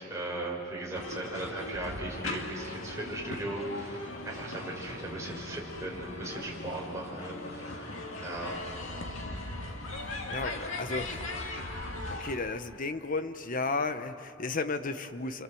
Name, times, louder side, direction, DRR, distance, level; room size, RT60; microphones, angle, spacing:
voice 1, 0.0-7.9 8.2-8.7, right 1 dB, 15° right, -3 dB, 5.2 m, -38 dB
sound 1, 0.9-12.4, left 2 dB, 75° left, 2.3 m, -39 dB
voice 2, 10.0-11.2 11.6-11.7 12.1-15.4, left 3 dB, 45° left, 10 dB, 1.0 m, -34 dB
29.0 x 25.5 x 7.8 m, 2.6 s
head